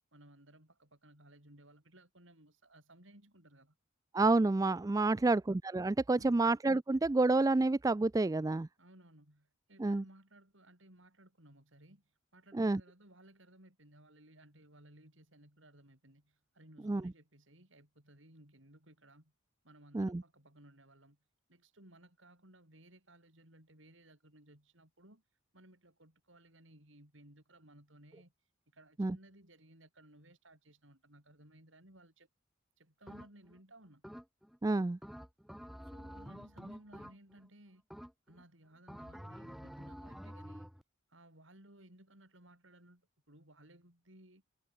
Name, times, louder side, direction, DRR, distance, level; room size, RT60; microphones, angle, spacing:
voice 1, 0.1-3.7 5.0-5.4 6.1-6.4 8.8-19.3 19.6-21.2 21.5-25.2 25.5-28.3 28.7-32.3 32.8-34.0 35.8-37.8 38.3-40.7 41.1-44.4, right 1 dB, 65° right, 7.6 m, -60 dB
voice 2, 4.1-8.7 9.8-10.0 12.5-12.8 16.9-17.0 19.9-20.2 29.0-29.2 34.6-35.0, right 2 dB, 15° right, 0.3 m, -29 dB
sound 1, 33.1-33.6 34.0-34.6 35.0-37.5 37.9-38.4 38.9-40.8, equal, ahead, 2.7 m, -49 dB
head